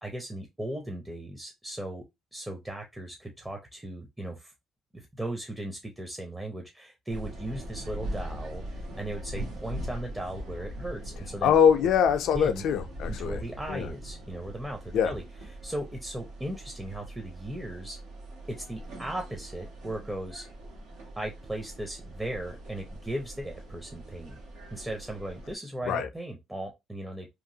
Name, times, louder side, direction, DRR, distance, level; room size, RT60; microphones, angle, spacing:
voice 1, 0.0-2.0 2.3-4.5 4.9-11.5 12.3-12.6 13.1-15.2 15.6-18.0 18.5-20.5 21.2-24.4 24.7-27.3, right 1 dB, 10° right, 0.6 m, -37 dB
sound 1, 7.1-25.5, right 1 dB, 85° right, 1.2 m, -41 dB
voice 2, 11.4-13.4 13.7-13.9 14.9-15.1 25.9-26.1, left 8 dB, 80° left, 0.4 m, -23 dB
2.9 x 2.4 x 2.7 m
cardioid pair, 85°, 0 cm